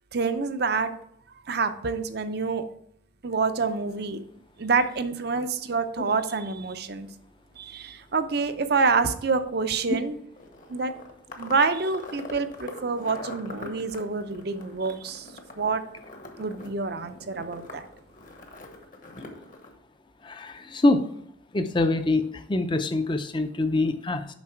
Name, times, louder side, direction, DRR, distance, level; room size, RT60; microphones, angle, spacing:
voice 1, 0.1-0.9 1.5-2.6 3.2-4.2 4.6-7.1 7.6-10.2 10.7-10.9 11.4-15.3 15.5-15.8 16.4-17.9, right 4 dB, 55° right, 9 dB, 0.6 m, -27 dB
sound 1, 10.3-19.7, left 2 dB, 45° left, 1.1 m, -43 dB
voice 2, 20.2-21.1 21.5-24.3, left 2 dB, 25° left, 9 dB, 0.5 m, -25 dB
7.3 x 5.2 x 4.5 m, 0.71 s
head